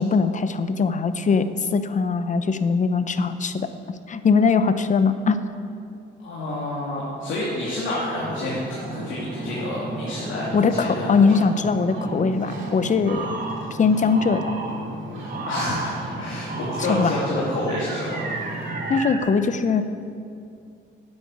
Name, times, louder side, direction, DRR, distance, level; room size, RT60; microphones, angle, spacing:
voice 1, 0.0-3.7 4.1-5.4 10.5-13.3 13.8-14.4 16.9-17.1 18.9-19.8, left 5 dB, 40° left, 11 dB, 0.8 m, -21 dB
voice 2, 6.2-8.6 8.9-10.4 10.7-11.2 15.1-18.2, left 1 dB, 80° left, -7 dB, 2.9 m, -29 dB
Ocean, 8.1-19.0, right 1 dB, 70° right, 3.3 m, -34 dB
sound 1, 13.1-13.6 14.1-14.7 15.3-15.9 16.5-17.1 17.7-19.2, right 3 dB, 45° right, 2.2 m, -33 dB
9.7 x 8.3 x 8.5 m, 2.5 s
cardioid pair, 90°, 20 cm